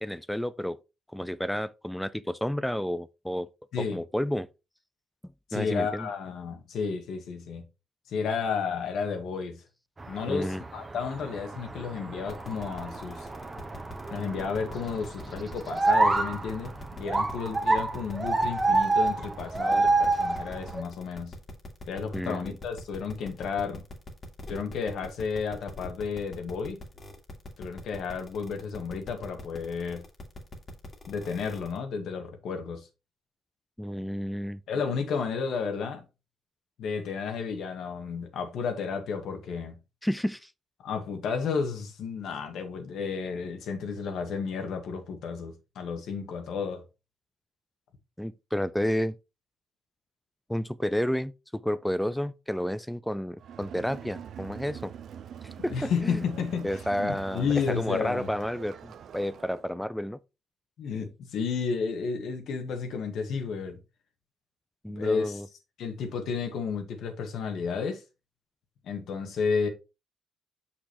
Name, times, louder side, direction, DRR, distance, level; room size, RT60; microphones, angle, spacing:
voice 1, 0.0-0.8 1.1-3.5 3.9-4.5 5.5-6.1 10.3-10.6 22.1-22.5 33.8-34.6 40.0-40.5 48.2-49.2 50.5-54.9 55.4-56.2 56.6-60.2 64.8-65.5, equal, 5° left, 0.4 m, -31 dB
voice 2, 5.5-7.6 8.1-9.6 10.1-13.3 14.1-21.3 21.9-23.8 24.5-26.8 27.6-30.0 31.1-32.9 34.7-36.0 36.8-39.8 40.8-46.8 55.7-58.3 60.8-63.8 64.9-65.4 65.8-68.0 68.8-69.7, left 5 dB, 75° left, 1.6 m, -32 dB
sound 1, 10.0-20.8, right 3 dB, 25° right, 1.1 m, -28 dB
sound 2, 12.3-31.8, left 2 dB, 35° left, 1.9 m, -43 dB
Crowd, 53.4-59.7, right 8 dB, 65° right, 0.5 m, -44 dB
6.3 x 5.9 x 3.0 m
cardioid pair, 90°, 0 cm